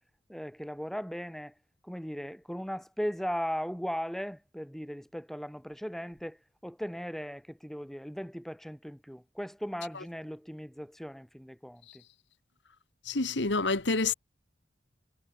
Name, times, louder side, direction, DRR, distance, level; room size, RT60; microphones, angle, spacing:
voice 1, 0.3-1.5 1.8-6.4 6.6-12.0, equal, ahead, 2.3 m, -37 dB
voice 2, 13.1-14.1, left 3 dB, 70° left, 1.9 m, -28 dB
head